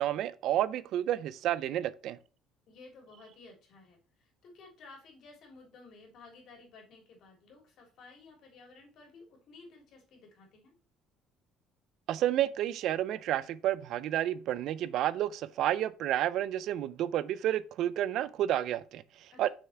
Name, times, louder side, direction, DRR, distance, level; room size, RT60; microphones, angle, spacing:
voice 1, 0.0-2.2 12.1-19.5, right 12 dB, 60° right, 0.5 m, -30 dB
voice 2, 2.7-10.7 19.3-19.5, left 3 dB, 55° left, 3.3 m, -54 dB
6.3 x 5.8 x 4.5 m
cardioid pair, 135°, 0 cm